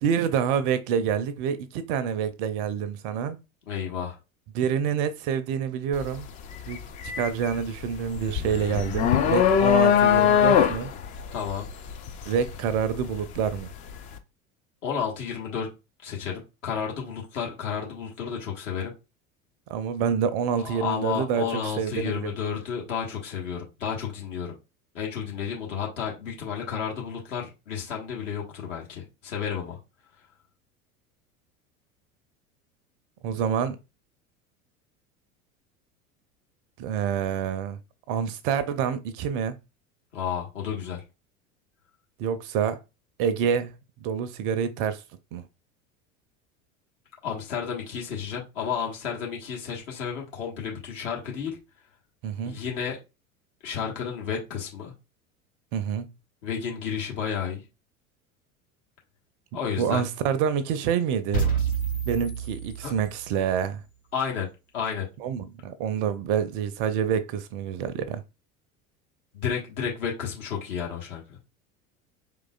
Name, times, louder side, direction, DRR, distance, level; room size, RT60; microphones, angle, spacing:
voice 1, 0.0-3.4 4.5-6.3 6.7-6.8 7.2-10.9 12.3-13.7 19.7-22.3 33.2-33.8 36.8-37.8 38.1-39.6 42.2-42.8 43.2-43.7 44.0-45.0 45.3-45.4 52.2-52.5 55.7-56.1 59.8-61.5 62.1-63.8 65.2-68.2, right 7 dB, 40° right, 0.5 m, -27 dB
voice 2, 3.7-4.2 11.3-11.7 14.8-15.7 16.0-18.9 20.6-24.6 24.9-29.8 40.1-41.0 47.2-51.6 52.4-53.0 53.6-54.9 56.4-57.6 59.5-60.0 62.8-62.9 64.1-64.5 64.7-65.1 69.3-71.4, left 7 dB, 60° left, 1.4 m, -31 dB
sound 1, 5.9-6.2 6.6-13.6, left 8 dB, 20° left, 0.3 m, -22 dB
sound 2, 61.3-63.4, right 6 dB, 80° left, 1.7 m, -28 dB
4.8 x 3.7 x 2.3 m
figure-of-eight pair, 75°, 42 cm